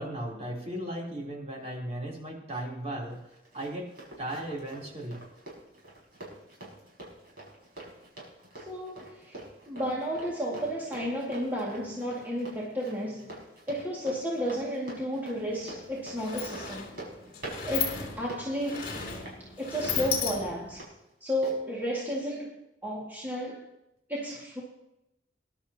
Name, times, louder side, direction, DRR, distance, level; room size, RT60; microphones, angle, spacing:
voice 1, 0.0-3.2 3.5-3.9 4.2-5.3, right 1 dB, 35° right, -3 dB, 3.6 m, -36 dB
Run, 3.1-20.9 21.4-21.6, right 2 dB, 55° right, 5.6 m, -46 dB
voice 2, 8.7-13.3 13.7-16.9 17.6-18.9 19.4-20.9 21.2-22.5 22.8-23.6 24.1-24.6, equal, 10° right, -5 dB, 2.2 m, -32 dB
Sliding door, 15.5-15.6 15.9-20.8, left 6 dB, 55° left, 3.0 m, -35 dB
21.0 x 11.5 x 2.9 m, 0.86 s
head